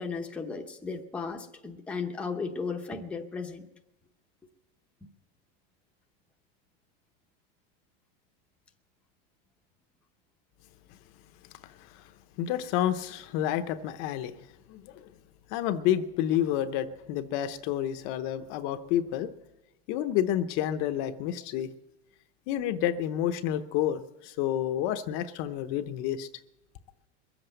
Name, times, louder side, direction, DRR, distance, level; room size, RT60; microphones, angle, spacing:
voice 1, 0.0-3.6, left 4 dB, 5° left, 2 dB, 0.8 m, -35 dB
voice 2, 11.6-12.1 12.4-14.4 14.7-15.1 15.5-19.3 19.9-21.7 22.5-26.3, left 11 dB, 40° left, 10 dB, 0.7 m, -29 dB
22.0 x 7.8 x 7.9 m, 0.97 s
supercardioid pair, 165°, 32 cm